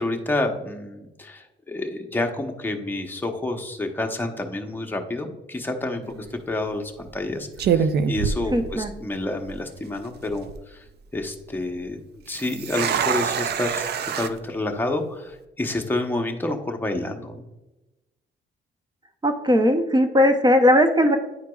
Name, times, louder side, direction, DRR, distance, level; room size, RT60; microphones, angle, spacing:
voice 1, 0.0-10.8 11.1-12.0 12.3-17.4, left 2 dB, 10° left, 3 dB, 0.9 m, -29 dB
sound 1, 6.0-6.3 7.1-7.3 7.6-9.2 9.5-9.6 10.2-10.6 12.3-14.3, right 7 dB, 55° right, 0.5 m, -25 dB
voice 2, 8.5-8.9 19.2-21.2, equal, 20° right, 6 dB, 0.7 m, -18 dB
9.6 x 4.6 x 2.3 m, 1.0 s
cardioid pair, 90°, 20 cm